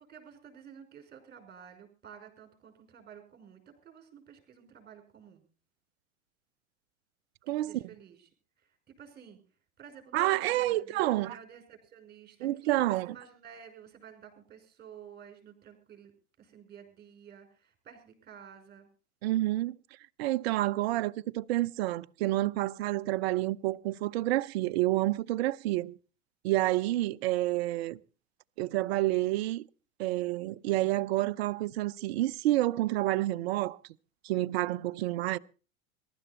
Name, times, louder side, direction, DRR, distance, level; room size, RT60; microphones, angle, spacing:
voice 1, 0.1-5.4 7.5-8.3 8.6-9.4 9.8-18.9, right 8 dB, 25° right, 5.5 m, -51 dB
voice 2, 7.5-7.8 10.1-11.3 12.4-13.1 19.2-19.8 20.2-26.0 26.4-28.0 28.6-29.6 30.0-33.8 34.2-35.4, right 17 dB, 50° right, 0.7 m, -29 dB
22.0 x 12.0 x 4.2 m
figure-of-eight pair, 90°, 41 cm